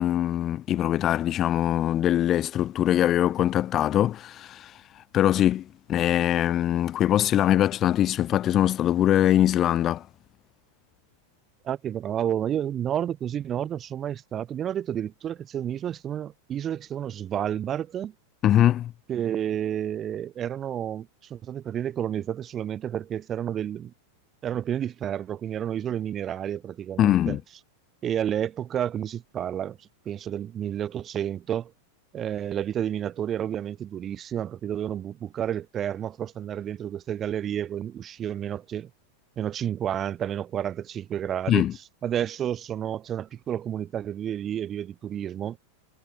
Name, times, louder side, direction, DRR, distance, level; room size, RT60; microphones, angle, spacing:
voice 1, 0.0-4.7 5.1-10.0 18.4-18.9 27.0-27.4 41.5-41.7, left 12 dB, 30° left, 1.1 m, -22 dB
voice 2, 11.6-18.1 19.1-23.9 24.4-27.4 28.0-31.7 32.1-38.9 39.4-41.7 42.0-45.6, right 10 dB, 25° right, 0.9 m, -30 dB
figure-of-eight pair, 90°, 0 cm